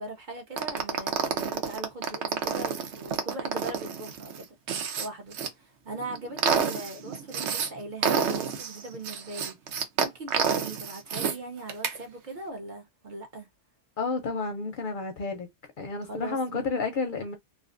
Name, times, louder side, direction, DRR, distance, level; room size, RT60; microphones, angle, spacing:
voice 1, 0.0-4.5 5.0-13.5 16.0-16.6, right 2 dB, 50° right, 0.8 m, -40 dB
sound 1, 0.6-5.5 6.0-7.7 8.0-11.4 11.7-12.0, right 6 dB, 80° right, 0.9 m, -29 dB
voice 2, 14.0-15.5 15.8-17.4, left 4 dB, 60° left, 0.6 m, -31 dB
2.4 x 2.3 x 2.4 m
omnidirectional pair, 1.2 m